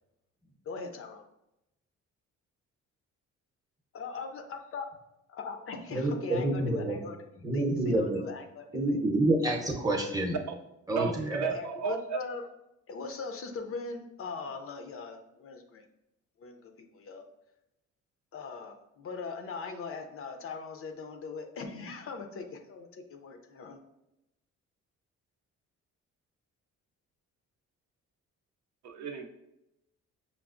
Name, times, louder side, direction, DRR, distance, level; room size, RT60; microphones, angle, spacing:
voice 1, 0.6-1.3 3.9-4.9 5.3-7.2 7.5-9.0 11.5-12.5 12.9-15.9 16.4-17.3 18.3-23.8, left 4 dB, 50° left, 5 dB, 0.5 m, -40 dB
voice 2, 5.9-7.0 7.4-8.2 8.7-10.3 10.9-11.5, right 1 dB, 10° right, 0 dB, 0.7 m, -28 dB
voice 3, 11.0-12.2 28.8-29.3, right 6 dB, 65° right, 5 dB, 0.5 m, -34 dB
5.8 x 2.0 x 2.4 m, 0.88 s
cardioid pair, 90°, 30 cm